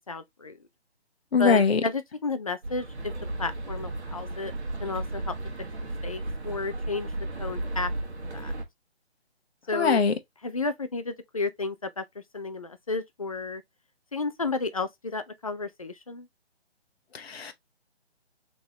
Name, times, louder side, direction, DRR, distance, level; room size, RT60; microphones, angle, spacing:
voice 1, 0.1-0.6 1.4-3.1 3.4-4.5 4.8-5.3 6.0-7.1 7.4-7.9 8.3-8.5 9.7-10.0 10.4-12.0 12.3-13.6 14.1-16.3, left 3 dB, 35° left, 0.4 m, -32 dB
voice 2, 1.3-1.8 9.7-10.1 17.1-17.5, left 5 dB, 65° left, 1.0 m, -22 dB
sound 1, 2.6-8.7, right 2 dB, 75° right, 1.5 m, -34 dB
3.8 x 3.7 x 2.8 m
figure-of-eight pair, 155°, 33 cm